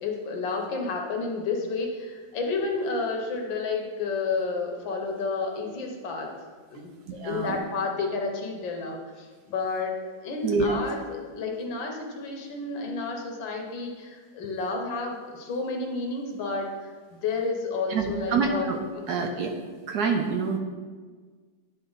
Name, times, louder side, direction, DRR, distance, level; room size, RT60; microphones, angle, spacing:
voice 1, 0.0-6.3 6.7-9.9 10.2-18.7 18.9-19.0, left 3 dB, 80° left, 2 dB, 1.8 m, -31 dB
voice 2, 7.1-7.6 10.4-10.8 17.9-18.8 19.1-19.5 19.9-20.6, right 5 dB, 70° right, 4 dB, 1.0 m, -26 dB
9.9 x 4.3 x 3.9 m, 1.5 s
omnidirectional pair, 2.0 m